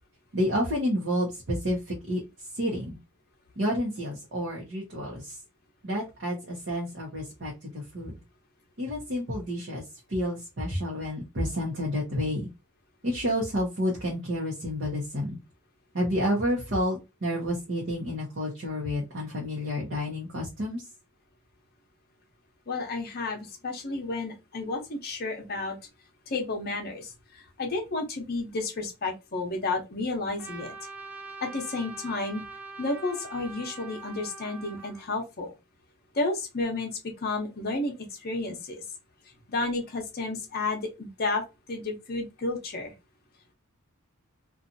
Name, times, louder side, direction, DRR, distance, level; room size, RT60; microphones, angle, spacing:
voice 1, 0.3-3.0 3.6-5.4 5.8-8.2 8.8-12.5 13.0-15.4 15.9-20.9, equal, 50° right, 0.8 m, -30 dB
voice 2, 22.7-25.8 26.3-30.7 31.4-32.4 32.8-35.5 36.1-36.9 37.2-38.8 39.5-41.4 41.7-42.9, left 3 dB, 45° left, 0.7 m, -31 dB
Trumpet, 30.4-35.1, right 3 dB, 5° right, 0.3 m, -43 dB
2.7 x 2.3 x 2.6 m
head